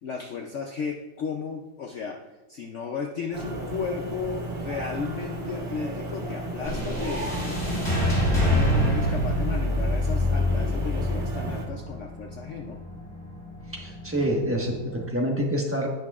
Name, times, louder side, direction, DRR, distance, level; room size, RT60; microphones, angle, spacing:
voice 1, 0.0-2.2 2.5-7.6 8.2-12.8, left 5 dB, 70° left, 3 dB, 0.7 m, -34 dB
sound 1, 3.3-11.7, right 2 dB, 35° right, 1.4 m, -34 dB
sound 2, 6.6-15.0, left 1 dB, 30° left, 2.5 m, -26 dB
voice 2, 13.7-15.9, equal, 10° right, -1 dB, 1.1 m, -27 dB
17.0 x 5.9 x 2.4 m, 1.1 s
omnidirectional pair, 1.9 m